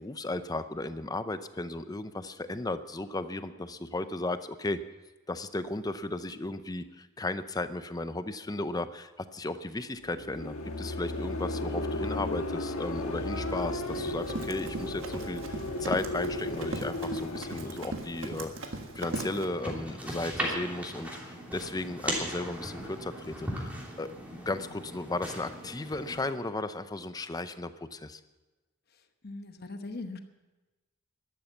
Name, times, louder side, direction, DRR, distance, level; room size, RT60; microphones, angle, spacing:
voice 1, 0.0-4.8 5.3-28.2, left 2 dB, 20° left, 12 dB, 0.6 m, -35 dB
sound 1, 10.0-19.1, left 1 dB, 90° left, 1.4 m, -35 dB
Run, 13.7-19.5, right 2 dB, 60° right, 1.7 m, -39 dB
sound 2, 19.1-26.3, equal, 5° right, 3.0 m, -38 dB
voice 2, 29.2-30.2, left 2 dB, 50° left, 8 dB, 1.1 m, -40 dB
13.0 x 11.5 x 7.1 m, 1.2 s
head